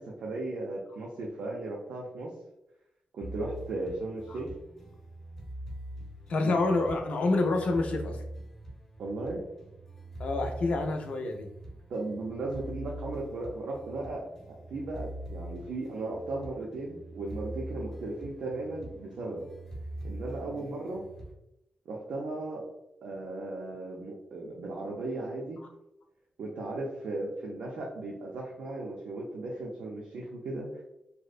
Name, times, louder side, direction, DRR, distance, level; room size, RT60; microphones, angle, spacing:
voice 1, 0.0-2.3 3.1-4.5 6.4-6.6 9.0-9.4 11.9-19.5 20.0-21.0 21.9-22.7 23.0-25.6 26.4-30.8, right 2 dB, 80° right, -3 dB, 0.4 m, -36 dB
sound 1, 3.2-21.3, right 1 dB, 15° left, 0.6 m, -43 dB
voice 2, 6.3-8.2 10.2-11.5, left 2 dB, 60° left, 3 dB, 0.4 m, -28 dB
2.5 x 2.1 x 2.4 m, 0.87 s
wide cardioid pair, 160°, 3 cm